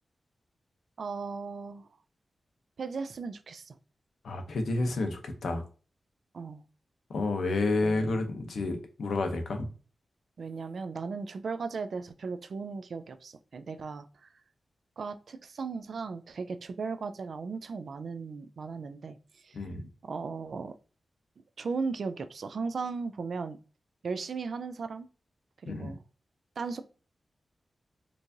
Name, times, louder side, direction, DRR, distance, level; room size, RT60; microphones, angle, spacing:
voice 1, 1.0-1.9 2.8-3.8 6.3-6.6 7.8-8.3 10.4-14.3 15.0-19.6 20.0-20.7 21.6-23.6 24.0-25.1 25.6-26.0 26.6-26.8, right 4 dB, 60° right, 0.3 m, -37 dB
voice 2, 4.2-5.6 7.1-9.7 19.5-19.9 25.7-26.0, left 2 dB, 80° left, 0.7 m, -30 dB
4.5 x 2.5 x 2.6 m
wide cardioid pair, 165°, 0 cm